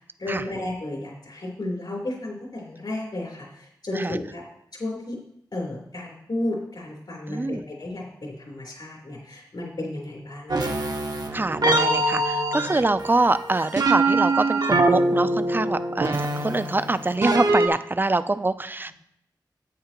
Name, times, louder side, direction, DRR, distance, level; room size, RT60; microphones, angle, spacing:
voice 1, 0.2-4.4 4.8-5.2 5.5-10.7, left 1 dB, 70° left, -2 dB, 3.6 m, -33 dB
voice 2, 7.3-7.7 11.3-18.9, right 2 dB, 25° right, 13 dB, 0.4 m, -25 dB
sound 1, 10.5-17.7, right 2 dB, 60° right, 0.8 m, -23 dB
10.0 x 8.5 x 3.0 m, 0.75 s
wide cardioid pair, 65°, 8 cm